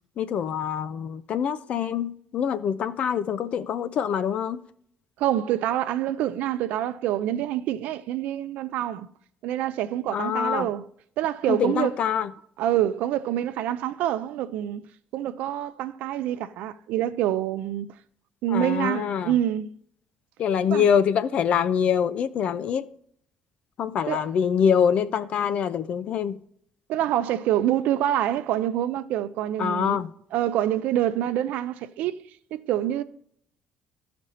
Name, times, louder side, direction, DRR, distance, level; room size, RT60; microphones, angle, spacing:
voice 1, 0.2-4.6 10.1-10.7 11.5-12.3 18.5-19.4 20.4-22.8 23.8-26.4 29.6-30.1, left 8 dB, 55° left, 0.6 m, -25 dB
voice 2, 5.2-9.1 9.4-10.8 11.2-11.9 12.6-14.8 15.1-17.9 18.4-19.7 20.7-20.8 24.1-24.2 26.9-30.0 30.3-32.2 32.5-33.0, right 12 dB, 80° right, 0.6 m, -26 dB
13.5 x 5.2 x 4.2 m
cardioid pair, 130°, 3 cm